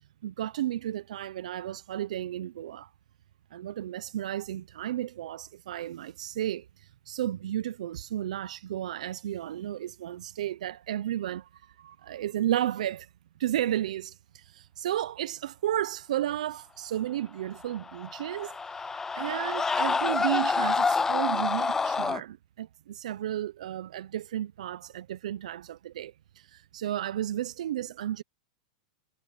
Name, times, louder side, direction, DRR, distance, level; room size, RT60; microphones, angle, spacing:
voice 1, 0.2-2.9 3.5-13.1 13.4-28.2, right 12 dB, 75° right, 0.8 m, -33 dB
Screaming, 17.7-22.2, left 4 dB, 10° left, 0.4 m, -28 dB
hypercardioid pair, 125°, 4 cm